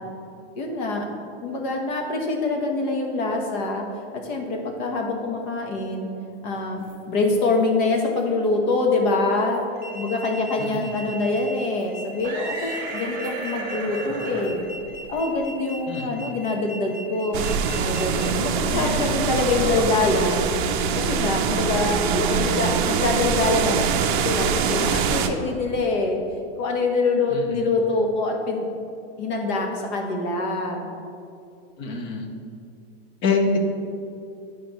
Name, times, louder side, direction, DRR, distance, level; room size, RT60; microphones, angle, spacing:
voice 1, 0.5-1.0 1.4-3.8 4.2-6.1 6.4-9.6 9.9-14.6 15.1-17.4 17.7-20.5 20.9-26.2 26.6-28.7 29.2-30.9, left 3 dB, 45° left, 2 dB, 1.1 m, -25 dB
sound 1, 6.5-7.0 7.4-7.6 8.2-8.3 8.7-8.8 9.3-9.7 10.6-10.8 11.3-11.4 11.8-16.0 16.3-16.4 17.1-17.2 19.2-19.7 20.0-22.0, right 2 dB, 25° right, 1.3 m, -36 dB
sound 2, 9.7-18.3, equal, 10° right, 0.9 m, -39 dB
voice 2, 10.6-10.9 15.9-16.1 18.7-19.1 19.6-19.9 27.3-27.4 31.8-32.3 33.2-33.6, left 4 dB, 15° left, 4 dB, 0.4 m, -26 dB
sound 3, 17.3-25.3, right 6 dB, 50° right, 0.5 m, -24 dB
9.9 x 5.0 x 3.0 m, 2.5 s
supercardioid pair, 165°, 32 cm